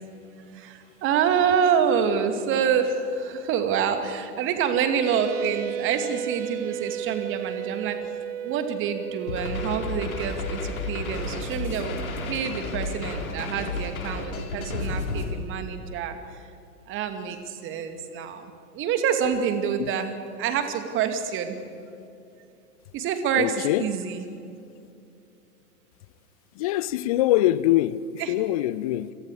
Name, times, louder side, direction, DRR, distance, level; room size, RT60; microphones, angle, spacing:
voice 1, 0.5-8.0 8.4-12.0 12.3-16.4 16.9-21.6 22.9-24.4 28.2-28.3, right 7 dB, 25° right, 2.6 m, -27 dB
sound 1, 5.0-13.1, right 9 dB, 55° right, 0.9 m, -35 dB
sound 2, 9.3-15.3, left 3 dB, 65° left, 5.1 m, -32 dB
voice 2, 23.3-23.9 26.5-29.1, left 14 dB, 25° left, 0.5 m, -24 dB
29.0 x 28.0 x 5.0 m
figure-of-eight pair, 105°, 46 cm